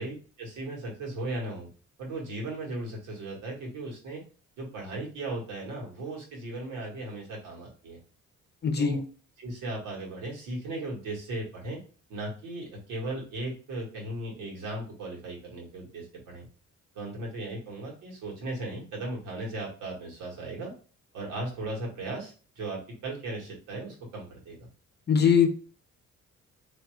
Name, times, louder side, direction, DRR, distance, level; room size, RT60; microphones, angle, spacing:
voice 1, 0.0-1.7 2.0-4.2 4.6-8.0 8.8-9.0 9.4-11.8 12.1-16.5 16.9-20.7 21.1-24.6, right 2 dB, 90° right, -1 dB, 1.5 m, -37 dB
voice 2, 8.6-9.0 25.1-25.5, left 7 dB, 35° left, 6 dB, 0.7 m, -21 dB
3.6 x 2.9 x 3.1 m, 0.38 s
cardioid pair, 90°, 30 cm